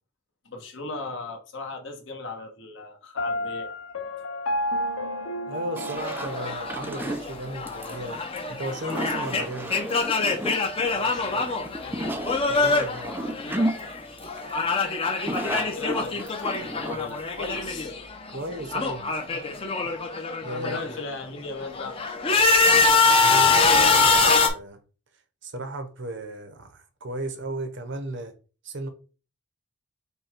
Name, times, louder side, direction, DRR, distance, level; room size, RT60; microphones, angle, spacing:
voice 1, 0.4-3.7 10.9-11.5 11.8-12.1 15.4-18.0 20.6-22.0, left 3 dB, 60° left, 1.3 m, -37 dB
Piano, 3.2-7.0, left 1 dB, 80° left, 0.7 m, -31 dB
voice 2, 5.5-8.2 8.5-9.8 12.5-13.2 18.3-19.4 19.8-20.0 20.4-21.0 23.1-24.8 25.4-28.3 28.6-28.9, right 1 dB, 55° right, 0.8 m, -35 dB
sound 1, 5.8-17.9, right 1 dB, 10° right, 0.4 m, -33 dB
sound 2, 6.0-14.0 14.2-18.0 18.3-21.0 21.5-24.5, left 4 dB, 25° left, 0.7 m, -24 dB
5.4 x 2.3 x 4.4 m
head